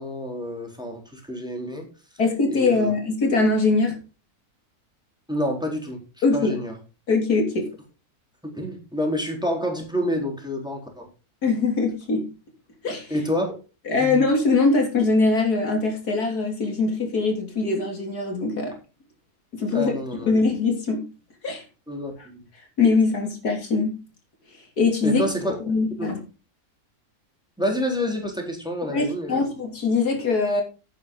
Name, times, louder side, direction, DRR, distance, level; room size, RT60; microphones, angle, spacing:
voice 1, 0.0-1.9 2.5-2.9 5.3-6.0 6.3-6.7 8.4-11.1 13.1-13.5 14.0-14.2 19.7-20.3 21.9-22.4 25.0-25.6 26.0-26.1 27.6-29.4, left 1 dB, 5° right, 1 dB, 4.0 m, -28 dB
voice 2, 2.2-4.0 6.2-6.5 7.1-7.7 11.4-12.3 12.8-13.1 13.9-18.7 19.5-21.1 21.4-21.6 22.8-24.0 24.8-25.2 25.6-26.2 28.9-30.6, left 3 dB, 90° left, 3 dB, 3.6 m, -22 dB
11.5 x 9.5 x 3.9 m, 0.31 s
omnidirectional pair, 1.6 m